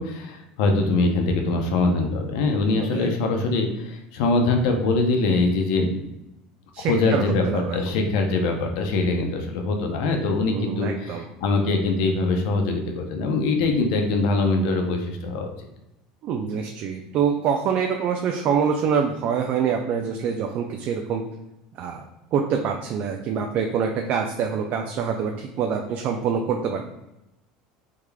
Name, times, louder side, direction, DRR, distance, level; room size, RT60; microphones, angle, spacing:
voice 1, 0.0-5.9 6.8-15.5, left 3 dB, 75° left, 3 dB, 0.6 m, -23 dB
voice 2, 2.8-3.1 6.7-8.0 10.5-11.3 16.2-21.2 21.8-22.0 22.3-26.8, right 6 dB, 50° right, 3 dB, 0.4 m, -25 dB
3.6 x 3.1 x 2.3 m, 0.90 s
supercardioid pair, 95°, 3 cm